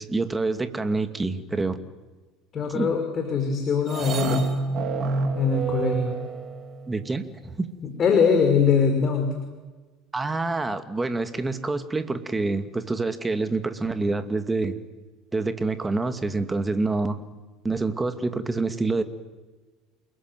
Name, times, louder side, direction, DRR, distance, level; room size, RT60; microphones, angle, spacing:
voice 1, 0.0-1.8 2.7-2.9 6.9-7.7 10.1-14.8 15.3-17.2 17.6-19.0, right 3 dB, 15° right, 9 dB, 2.5 m, -27 dB
voice 2, 2.5-4.5 5.3-6.1 8.0-9.3, left 5 dB, 35° left, 4 dB, 5.4 m, -22 dB
sound 1, 3.9-7.0, right 3 dB, 40° right, 4.0 m, -28 dB
28.5 x 21.0 x 9.5 m, 1.3 s
hypercardioid pair, 70°, 0 cm